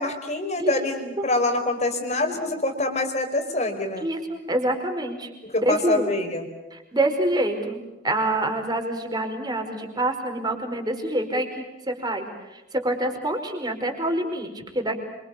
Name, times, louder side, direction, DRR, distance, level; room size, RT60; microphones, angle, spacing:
voice 1, 0.0-4.1 5.4-6.5, left 2 dB, 35° left, 6 dB, 4.6 m, -25 dB
voice 2, 4.0-5.3 5.6-6.1 6.7-11.5 11.9-12.3 12.5-15.0, right 1 dB, 20° right, 4 dB, 5.1 m, -26 dB
27.5 x 26.5 x 6.9 m, 0.98 s
head